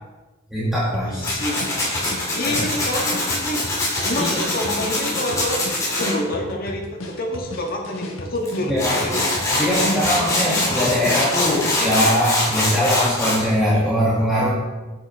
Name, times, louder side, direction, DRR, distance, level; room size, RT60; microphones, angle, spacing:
voice 1, 0.5-1.2 2.5-2.6 4.2-4.4 8.6-9.0 9.5-14.5, equal, ahead, -10 dB, 2.1 m, -21 dB
sound 1, 0.9-11.7, left 1 dB, 75° left, 1.4 m, -35 dB
voice 2, 1.0-1.7 2.3-3.7 4.0-10.5, left 1 dB, 45° left, 0 dB, 1.5 m, -28 dB
Tools, 1.2-6.1 8.5-8.6 8.8-13.4, left 2 dB, 15° left, 2.8 m, -23 dB
9.1 x 8.8 x 3.5 m, 1.1 s
head